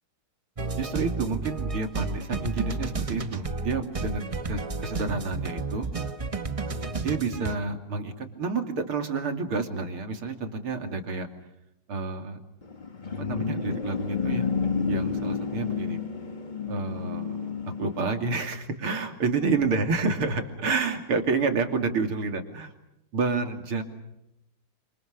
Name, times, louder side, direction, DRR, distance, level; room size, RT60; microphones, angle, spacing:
sound 1, 0.6-7.6, right 3 dB, 30° right, 0.6 m, -32 dB
voice 1, 0.8-5.9 7.0-11.3 11.9-12.4 13.2-14.5 14.9-16.0 16.7-17.5 17.8-22.7 23.1-23.8, right 4 dB, 90° right, 5 dB, 3.6 m, -29 dB
sound 2, 12.6-18.2, left 6 dB, 25° left, 1.2 m, -30 dB
28.5 x 27.0 x 6.6 m, 0.84 s
omnidirectional pair, 2.3 m